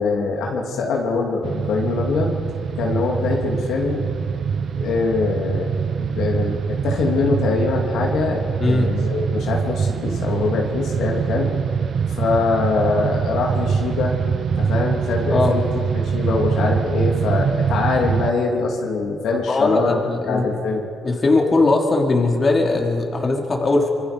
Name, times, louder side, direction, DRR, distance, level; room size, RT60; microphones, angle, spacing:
voice 1, 0.0-2.4 2.8-4.1 4.8-11.5 12.2-14.2 14.6-15.7 15.9-20.8, left 4 dB, 80° left, -1 dB, 3.1 m, -23 dB
sound 1, 1.4-18.3, right 6 dB, 55° right, 0.8 m, -24 dB
voice 2, 8.6-8.9 14.6-14.7 15.3-15.6 19.5-20.5 21.0-23.9, left 3 dB, 35° left, 0 dB, 3.0 m, -19 dB
25.5 x 22.5 x 5.4 m, 2.5 s
cardioid pair, 90°, 0 cm